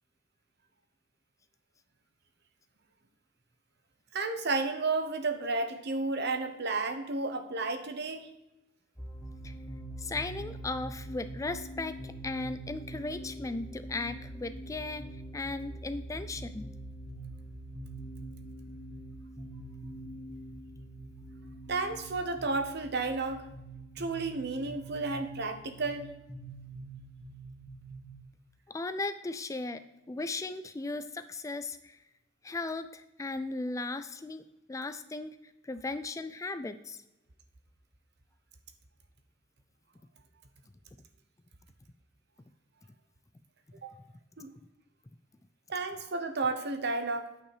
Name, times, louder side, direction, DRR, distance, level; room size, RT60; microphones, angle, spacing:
voice 1, 4.1-8.3 21.7-23.4 24.0-26.1 43.8-43.9 44.4-44.5 45.7-47.3, right 3 dB, 55° right, 7 dB, 1.0 m, -32 dB
sound 1, 9.0-28.2, right 1 dB, ahead, 1.4 m, -44 dB
voice 2, 10.0-15.0 15.3-16.7 28.7-32.0 32.4-34.4 34.7-37.0, left 3 dB, 15° left, 11 dB, 0.3 m, -37 dB
9.4 x 5.5 x 4.8 m, 0.95 s
head